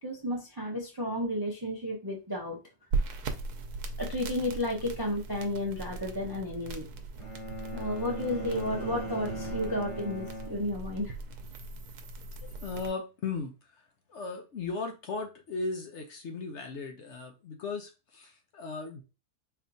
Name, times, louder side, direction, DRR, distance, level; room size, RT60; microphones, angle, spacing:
voice 1, 0.0-2.6 4.0-6.9 7.7-11.2, left 1 dB, 35° right, 0.3 m, -32 dB
sound 1, 2.9-12.9, right 3 dB, 85° right, 1.2 m, -38 dB
Bowed string instrument, 7.2-11.3, right 1 dB, 30° left, 0.6 m, -40 dB
sound 2, 7.7-11.2 11.5-11.9, right 4 dB, 55° right, 1.0 m, -49 dB
voice 2, 12.4-13.5 14.1-19.0, left 4 dB, 60° left, 0.8 m, -37 dB
4.2 x 2.9 x 2.6 m
omnidirectional pair, 1.6 m